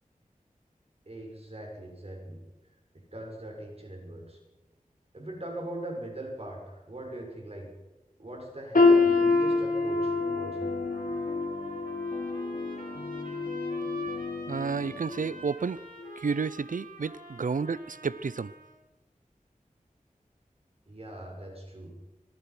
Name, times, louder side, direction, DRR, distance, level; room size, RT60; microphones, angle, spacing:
voice 1, 1.1-2.4 3.1-4.4 5.1-7.7 8.2-10.7 20.9-21.9, right 1 dB, 45° right, 1 dB, 6.5 m, -41 dB
sound 1, 8.7-14.7 15.1-15.3 16.1-16.2, left 3 dB, 75° left, 3.4 m, -26 dB
sound 2, 8.8-15.5, left 2 dB, 45° left, 3.3 m, -42 dB
Trumpet, 10.8-18.7, right 2 dB, 85° right, 5.8 m, -47 dB
voice 2, 14.5-15.8 16.2-18.5, right 5 dB, 70° right, 18 dB, 0.6 m, -31 dB
26.5 x 18.5 x 6.0 m, 1.1 s
wide cardioid pair, 65°, 14 cm